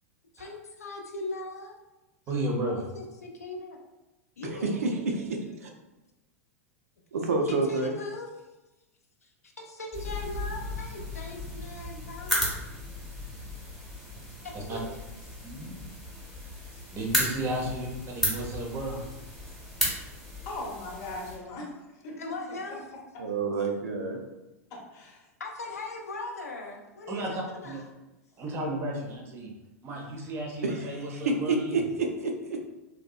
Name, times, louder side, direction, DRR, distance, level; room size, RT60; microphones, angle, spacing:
voice 1, 0.3-1.7 2.7-3.8 4.4-4.8 7.5-8.4 9.2-9.3 9.6-12.6 14.4-14.9 15.3-15.4 16.7-16.8 22.2-22.8 25.4-27.9, left 2 dB, 75° left, 1 dB, 0.4 m, -39 dB
voice 2, 2.3-2.8 14.5-14.8 16.9-17.9 18.1-19.0 27.1-27.8 28.4-29.5 29.8-31.8, right 1 dB, 30° right, -1 dB, 0.6 m, -33 dB
voice 3, 5.2-5.7 7.1-7.9 23.2-24.2 30.6-32.3, right 3 dB, 70° right, 2 dB, 0.4 m, -28 dB
sound 1, 9.9-21.4, left 1 dB, ahead, 0.9 m, -34 dB
voice 4, 20.5-21.7 22.0-22.2 22.7-22.8 24.7-25.3, left 2 dB, 40° left, -1 dB, 0.7 m, -39 dB
2.7 x 2.1 x 2.3 m, 1.0 s
figure-of-eight pair, 90°, 8 cm